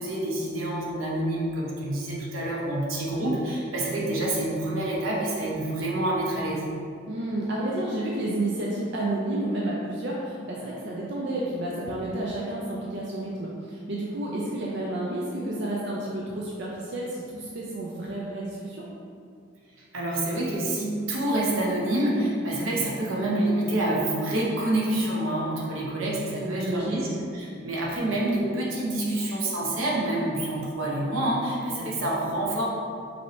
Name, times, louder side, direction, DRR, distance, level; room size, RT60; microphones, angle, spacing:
voice 1, 0.0-6.6 19.9-27.1 27.3-32.7, right 1 dB, 90° right, -4 dB, 0.9 m, -27 dB
voice 2, 7.1-18.8 26.4-27.0, right 1 dB, 60° right, -5 dB, 0.5 m, -30 dB
5.2 x 2.8 x 3.2 m, 2.3 s
head